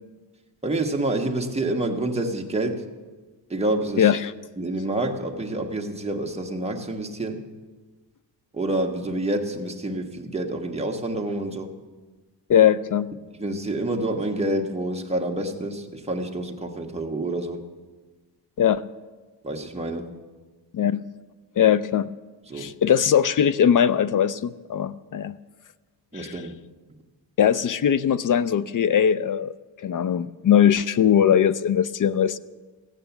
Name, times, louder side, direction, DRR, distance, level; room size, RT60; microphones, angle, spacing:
voice 1, 0.6-2.9 3.5-4.1 4.6-7.5 8.5-11.7 13.4-17.6 19.4-20.1 22.5-22.7 26.1-26.6, right 1 dB, 15° right, 2 dB, 1.3 m, -28 dB
voice 2, 4.0-4.3 12.5-13.1 18.6-18.8 20.7-21.0 21.6-22.1 22.5-25.3 26.1-26.3 27.4-29.5 29.8-32.4, left 9 dB, 50° left, 16 dB, 0.4 m, -20 dB
15.5 x 8.9 x 7.0 m, 1.3 s
cardioid pair, 115°, 44 cm